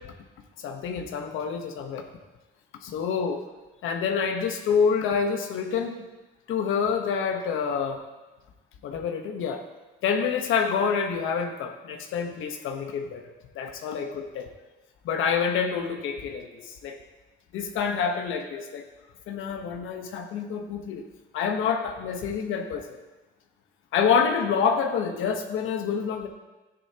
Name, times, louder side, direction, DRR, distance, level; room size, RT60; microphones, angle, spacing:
voice 1, 0.6-2.1 2.8-3.4 3.8-6.0 6.5-8.0 8.8-9.6 10.0-13.2 13.5-14.5 15.0-17.0 17.5-18.9 19.3-21.1 21.3-23.0 23.9-26.3, left 6 dB, 85° left, 4 dB, 1.2 m, -27 dB
13.0 x 9.9 x 2.9 m, 1.1 s
cardioid pair, 90°, 20 cm